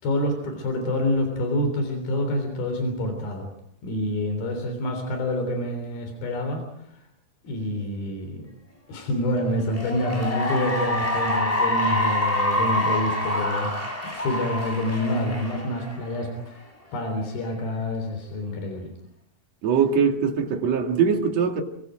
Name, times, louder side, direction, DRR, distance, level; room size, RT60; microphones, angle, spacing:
voice 1, 0.0-3.5 3.8-6.6 7.4-8.4 8.9-13.7 14.1-16.6 16.9-18.9, left 1 dB, 85° left, 4 dB, 5.5 m, -27 dB
Cheering / Applause, 9.6-16.3, left 1 dB, 10° left, 3.6 m, -26 dB
voice 2, 19.6-21.6, right 6 dB, 50° right, 2 dB, 3.2 m, -22 dB
28.0 x 24.0 x 5.1 m, 0.74 s
omnidirectional pair, 4.2 m